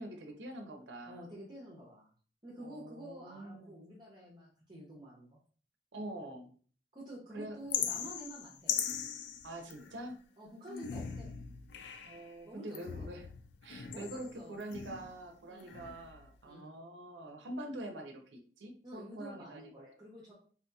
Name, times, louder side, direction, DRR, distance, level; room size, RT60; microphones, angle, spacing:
voice 1, 0.0-1.3 2.6-3.7 5.9-6.5 7.3-7.6 9.4-10.2 12.0-13.3 13.6-19.9, right 1 dB, 90° right, 4 dB, 0.6 m, -45 dB
voice 2, 1.1-2.1 2.4-5.4 6.9-8.8 10.4-11.3 12.4-13.1 13.9-14.6 15.5-15.8 16.4-16.7 18.8-20.3, equal, 25° right, -4 dB, 0.7 m, -49 dB
sound 1, 7.7-10.1 10.7-12.3 12.7-15.2 15.6-16.3, left 8 dB, 75° left, 0.3 m, -40 dB
3.7 x 2.7 x 2.3 m, 0.44 s
head